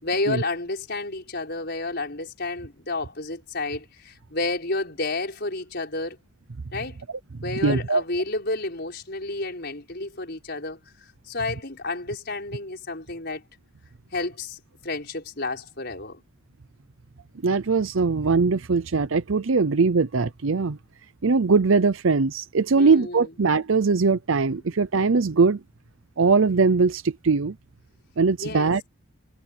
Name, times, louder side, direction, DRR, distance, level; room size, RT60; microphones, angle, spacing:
voice 1, 0.0-6.2 6.7-7.0 7.4-13.4 14.1-16.2 22.7-23.3 28.4-28.7, left 2 dB, 50° left, 5.6 m, -31 dB
voice 2, 7.6-8.0 17.4-20.8 21.2-25.6 26.2-27.5 28.2-28.8, right 4 dB, 70° right, 0.7 m, -21 dB
head